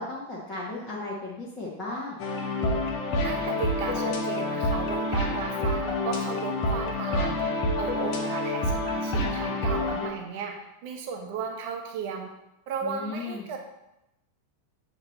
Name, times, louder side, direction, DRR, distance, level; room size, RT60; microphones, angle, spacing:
voice 1, 0.0-2.2 12.8-13.4, left 2 dB, 15° left, -8 dB, 1.4 m, -35 dB
sound 1, 2.2-10.1, left 1 dB, 40° left, 1.0 m, -28 dB
voice 2, 3.2-7.4 7.8-10.5 10.8-12.3 12.7-13.6, right 6 dB, 45° right, 2 dB, 1.0 m, -35 dB
7.7 x 3.0 x 4.2 m, 0.88 s
figure-of-eight pair, 90°, 0 cm